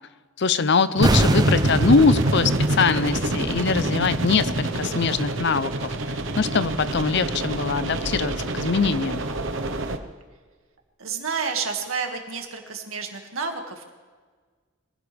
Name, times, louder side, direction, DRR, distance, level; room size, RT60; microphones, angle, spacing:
voice 1, 0.4-9.2, left 4 dB, 55° left, 14 dB, 0.6 m, -22 dB
sound 1, 1.0-6.0 6.3-6.5, right 1 dB, 20° right, 0.6 m, -27 dB
sound 2, 1.0-10.0, right 1 dB, 65° right, 1.1 m, -26 dB
voice 2, 11.0-13.9, right 5 dB, 85° right, 3 dB, 2.2 m, -30 dB
23.5 x 16.0 x 3.5 m, 1.5 s
head